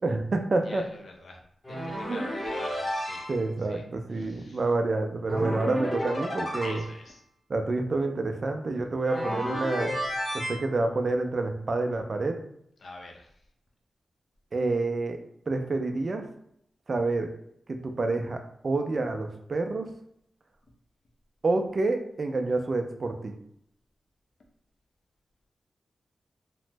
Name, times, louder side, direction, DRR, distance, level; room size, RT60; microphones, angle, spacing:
voice 1, 0.0-0.9 2.1-2.2 3.3-6.8 7.5-10.0 10.3-12.4 14.5-15.2 15.5-16.2 16.9-17.3 17.7-19.9 21.4-23.3, right 3 dB, 40° right, 5 dB, 0.3 m, -28 dB
voice 2, 0.6-1.4 1.7-3.3 3.6-3.8 4.1-4.6 6.6-7.2 12.8-13.4, left 2 dB, 55° left, 1 dB, 0.5 m, -45 dB
sound 1, 1.6-3.4 5.3-7.0 9.0-10.6, equal, 15° left, 0.8 m, -32 dB
2.9 x 2.0 x 3.3 m, 0.71 s
wide cardioid pair, 165°, 0 cm